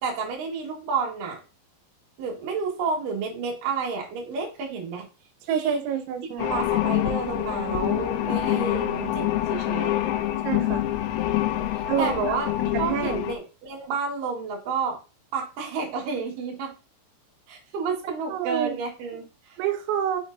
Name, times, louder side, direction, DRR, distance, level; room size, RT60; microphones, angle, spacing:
voice 1, 0.0-1.4 2.2-5.1 5.4-5.8 6.4-10.0 11.7-12.5 12.8-15.0 15.3-16.7 17.5-19.6, right 5 dB, 60° right, 2.7 m, -30 dB
voice 2, 5.5-6.7 10.4-10.8 11.9-12.3 12.6-13.2 18.3-18.8 19.6-20.2, right 9 dB, 85° right, 3.0 m, -28 dB
sound 1, 6.4-13.3, left 13 dB, 85° left, 2.7 m, -26 dB
6.2 x 5.9 x 2.6 m
omnidirectional pair, 5.2 m